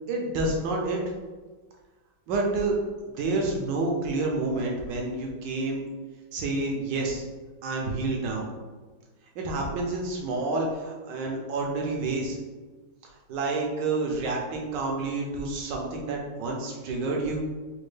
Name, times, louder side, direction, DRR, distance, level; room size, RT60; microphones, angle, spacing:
voice 1, 0.1-1.0 2.3-2.8 3.2-5.8 6.3-7.2 7.6-8.5 9.4-12.4 13.3-17.4, right 3 dB, 70° right, -1 dB, 1.1 m, -29 dB
4.2 x 2.2 x 3.2 m, 1.3 s
omnidirectional pair, 2.3 m